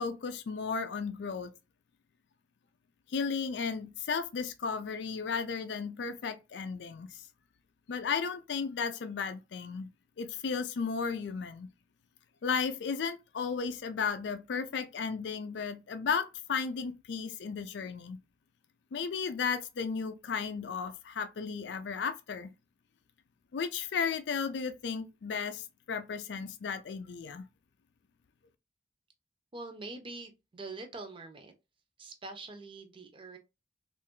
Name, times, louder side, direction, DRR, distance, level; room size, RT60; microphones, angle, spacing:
voice 1, 0.0-1.5 3.1-7.2 7.9-9.9 10.2-11.7 12.4-18.2 18.9-22.5 23.5-27.5, left 5 dB, 75° left, 0.4 m, -34 dB
voice 2, 29.5-31.5 32.0-33.4, right 3 dB, 30° right, 0.7 m, -44 dB
3.2 x 2.5 x 3.7 m
head